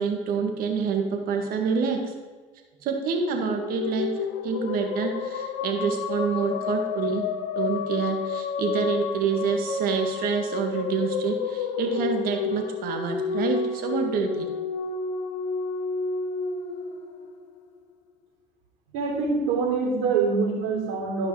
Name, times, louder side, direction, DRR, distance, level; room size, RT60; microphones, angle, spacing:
voice 1, 0.0-2.0 2.8-4.1 4.4-7.2 7.6-14.5, right 5 dB, 60° right, 4 dB, 1.8 m, -27 dB
sound 1, 3.3-17.8, left 6 dB, 70° left, 0.8 m, -30 dB
voice 2, 18.9-21.3, right 4 dB, 75° right, -2 dB, 3.3 m, -25 dB
12.5 x 5.3 x 4.8 m, 1.4 s
supercardioid pair, 90°, 17 cm